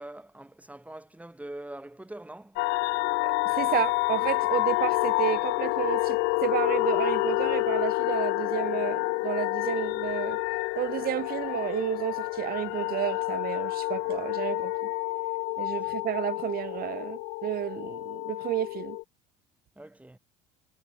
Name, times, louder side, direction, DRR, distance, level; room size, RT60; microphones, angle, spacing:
voice 1, 0.0-2.7 15.6-15.8 19.8-20.2, right 1 dB, 5° right, 7.1 m, -43 dB
sound 1, 2.6-19.0, left 28 dB, 60° left, 2.4 m, -28 dB
voice 2, 3.2-10.4 10.8-14.9 15.6-19.0, right 13 dB, 50° right, 3.5 m, -31 dB
hypercardioid pair, 65°, 20 cm